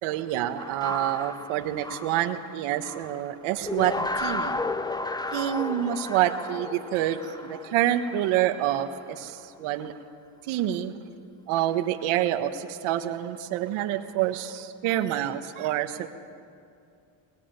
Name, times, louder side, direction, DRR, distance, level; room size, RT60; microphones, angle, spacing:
voice 1, 0.0-4.6 5.3-9.9 10.5-10.9 11.5-16.1, right 12 dB, 85° right, 8 dB, 1.4 m, -27 dB
sound 1, 0.6-3.2 3.6-8.7, left 2 dB, 10° left, 0.7 m, -33 dB
22.0 x 19.5 x 9.1 m, 2.5 s
cardioid pair, 105°, 48 cm